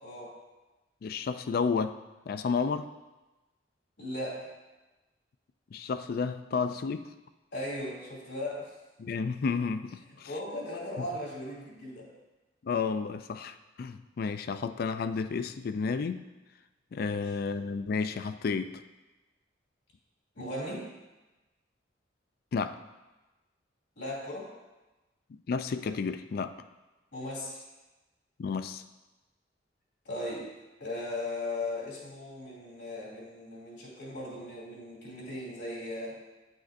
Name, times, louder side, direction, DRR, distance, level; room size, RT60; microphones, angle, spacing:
voice 1, 0.0-0.3 4.0-4.5 7.5-8.7 10.3-12.1 20.3-20.9 24.0-24.5 27.1-27.6 30.0-30.5 30.8-36.2, left 1 dB, 75° left, -5 dB, 2.5 m, -37 dB
voice 2, 1.0-2.0 2.3-2.9 5.7-7.0 9.0-10.3 11.0-11.1 12.6-16.2 16.9-18.7 22.5-22.8 25.5-26.5 28.4-28.8, left 5 dB, 55° left, 11 dB, 0.3 m, -31 dB
9.4 x 6.2 x 2.6 m, 1.1 s
head